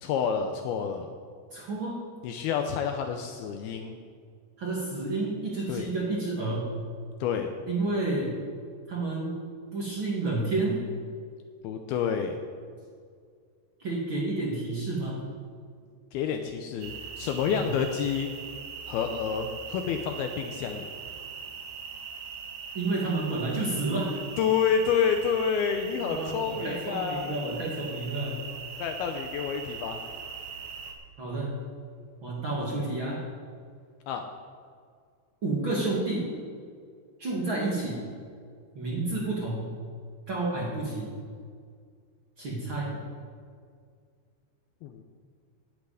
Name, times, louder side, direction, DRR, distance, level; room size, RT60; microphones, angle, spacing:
voice 1, 0.0-1.1 2.2-4.0 5.7-5.9 7.2-7.5 11.6-12.4 16.1-18.3 18.9-20.9 24.4-27.4 28.8-30.0 34.1-34.2 44.8-45.0, left 7 dB, 80° left, 5 dB, 2.4 m, -29 dB
voice 2, 1.5-2.0 4.6-6.7 7.7-8.3 8.9-9.4 9.7-10.8 13.8-15.2 17.5-17.6 22.7-24.1 26.0-28.4 31.2-31.5 32.2-33.2 35.4-36.3 37.2-38.1 38.7-39.7 40.3-41.1 42.4-43.0, right 2 dB, 40° right, -4 dB, 1.9 m, -30 dB
sound 1, 16.8-30.9, right 6 dB, 80° right, 3.5 m, -41 dB
10.5 x 8.3 x 9.2 m, 2.1 s
omnidirectional pair, 4.9 m